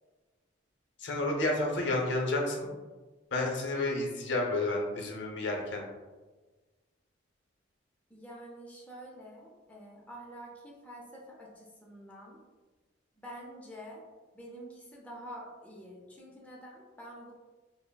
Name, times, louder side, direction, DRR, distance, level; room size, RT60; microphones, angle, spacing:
voice 1, 1.0-2.7 3.3-5.8, left 2 dB, 70° left, 0 dB, 0.6 m, -30 dB
voice 2, 8.1-12.4 13.2-14.0 14.3-17.3, equal, 10° left, -3 dB, 0.4 m, -47 dB
5.6 x 2.0 x 2.2 m, 1.3 s
head